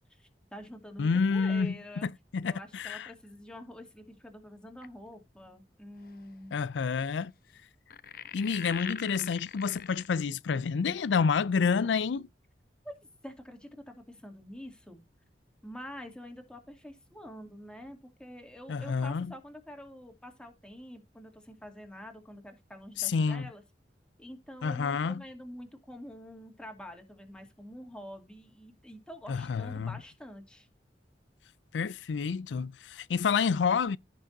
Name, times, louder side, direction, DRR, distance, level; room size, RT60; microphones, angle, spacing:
voice 1, 0.1-2.1 2.5-6.6 12.8-13.0 13.2-15.0 15.6-23.6 24.2-30.7, equal, 5° left, 2.5 m, -47 dB
voice 2, 1.0-1.7 2.3-3.1 6.5-7.3 8.3-12.3 18.7-19.3 23.0-23.5 24.6-25.2 29.3-30.0 31.7-34.0, left 5 dB, 90° left, 0.4 m, -29 dB
sound 1, 4.8-5.1 6.0-6.2 7.9-10.1, left 9 dB, 55° left, 0.8 m, -41 dB
15.5 x 6.1 x 2.7 m
head